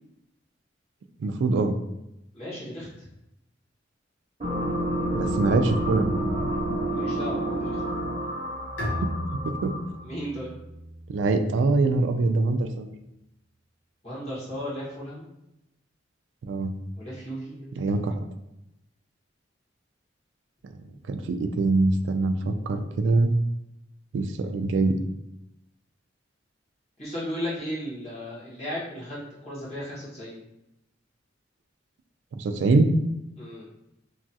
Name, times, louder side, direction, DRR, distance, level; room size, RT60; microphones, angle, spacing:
voice 1, 1.2-1.7 5.1-6.1 9.4-9.7 11.1-12.9 16.4-16.7 17.8-18.1 21.1-23.3 24.1-25.0 32.4-32.9, right 3 dB, 70° right, 8 dB, 0.3 m, -23 dB
voice 2, 2.3-3.1 6.9-7.8 10.0-10.5 14.0-15.3 17.0-17.7 27.0-30.4 33.4-33.6, equal, 35° left, -8 dB, 1.3 m, -35 dB
sound 1, 4.4-10.0, right 1 dB, 35° right, 0.8 m, -29 dB
Bowed string instrument, 8.8-12.2, equal, 85° left, 0.9 m, -36 dB
2.9 x 2.3 x 2.7 m, 0.88 s
head